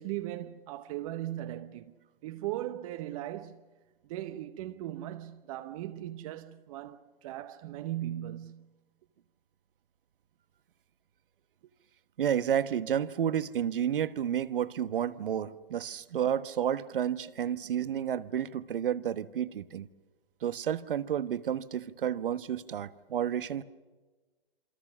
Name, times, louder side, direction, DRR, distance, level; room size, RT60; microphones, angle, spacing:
voice 1, 0.0-1.9 2.2-3.6 4.0-8.7, right 13 dB, 35° right, 1.0 m, -38 dB
voice 2, 12.2-19.9 20.4-23.6, right 9 dB, 65° right, 1.2 m, -31 dB
27.5 x 25.0 x 6.2 m
hypercardioid pair, 130°, 29 cm